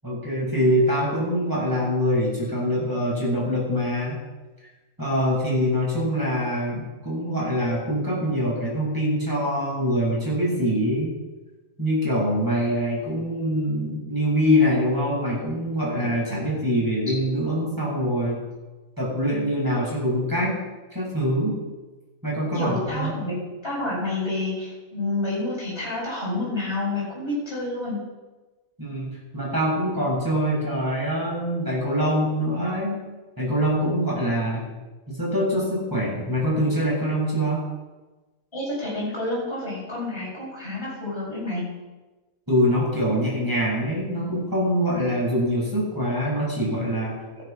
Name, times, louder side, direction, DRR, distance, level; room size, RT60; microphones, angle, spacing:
voice 1, 0.0-4.2 5.0-11.1 11.8-18.4 19.0-20.6 20.9-21.6 22.2-23.2 28.8-33.0 33.4-34.6 35.1-37.6 42.5-47.1, equal, 15° right, -5 dB, 7.5 m, -24 dB
voice 2, 22.5-23.4 23.6-28.0 38.5-41.6, left 2 dB, 20° left, -8 dB, 7.4 m, -29 dB
15.0 x 14.0 x 6.1 m, 1.2 s
omnidirectional pair, 1.4 m